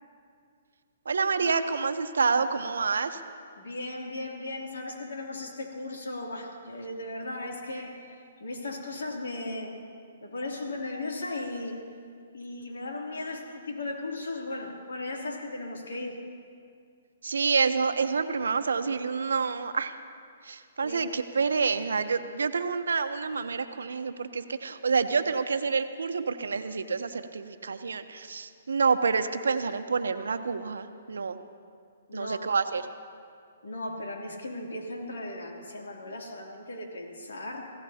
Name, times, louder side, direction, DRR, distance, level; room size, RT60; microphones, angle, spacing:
voice 1, 1.1-3.2 17.2-19.9 20.4-31.4 32.1-32.8, right 5 dB, 90° right, 9 dB, 0.8 m, -28 dB
voice 2, 3.6-9.8 10.2-11.8 12.3-16.2 20.8-21.0 32.1-32.4 33.6-37.7, left 2 dB, 85° left, -1 dB, 2.8 m, -37 dB
26.0 x 16.0 x 2.9 m, 2.2 s
hypercardioid pair, 150°, 0 cm